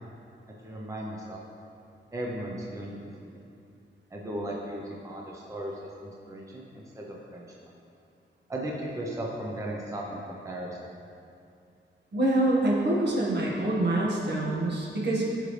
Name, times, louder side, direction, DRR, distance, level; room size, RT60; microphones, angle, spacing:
voice 1, 0.6-1.4 2.1-3.4 4.1-7.7 8.5-10.8, right 1 dB, 15° right, -3 dB, 0.8 m, -36 dB
voice 2, 12.1-15.3, right 1 dB, 60° right, -4 dB, 1.7 m, -25 dB
13.5 x 5.2 x 3.3 m, 2.5 s
wide cardioid pair, 150°, 20 cm